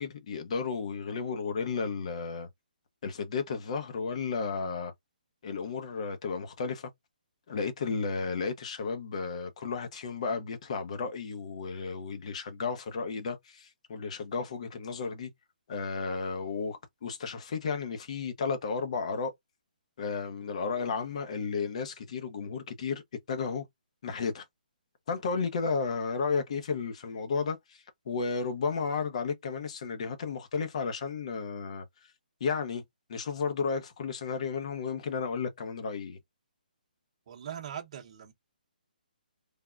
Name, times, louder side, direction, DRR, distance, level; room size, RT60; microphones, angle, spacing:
voice 1, 0.0-2.5 3.0-4.9 5.4-6.9 7.5-15.3 15.7-19.3 20.0-23.0 23.3-23.6 24.0-24.4 25.1-31.8 32.4-32.8 33.1-36.2, left 5 dB, 45° left, 0.7 m, -33 dB
voice 2, 37.3-38.3, right 9 dB, 40° right, 0.8 m, -41 dB
3.4 x 2.1 x 2.4 m
hypercardioid pair, 165°, 5 cm